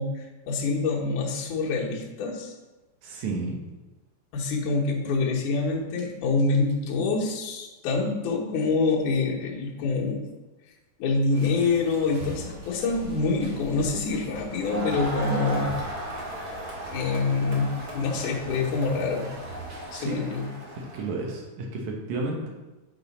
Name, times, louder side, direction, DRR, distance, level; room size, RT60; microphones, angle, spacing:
voice 1, 0.0-2.5 4.3-10.2 11.0-15.7 16.8-19.3 19.9-20.5, left 3 dB, 75° left, -2 dB, 2.5 m, -26 dB
voice 2, 3.0-3.6 19.9-20.2 20.9-22.5, right 3 dB, 70° right, 0 dB, 2.3 m, -31 dB
sound 1, 11.3-19.9, right 1 dB, 45° right, 2.4 m, -42 dB
Crowd, 14.6-21.1, right 1 dB, 90° right, 0.8 m, -36 dB
8.6 x 4.0 x 4.1 m, 1.1 s
omnidirectional pair, 3.7 m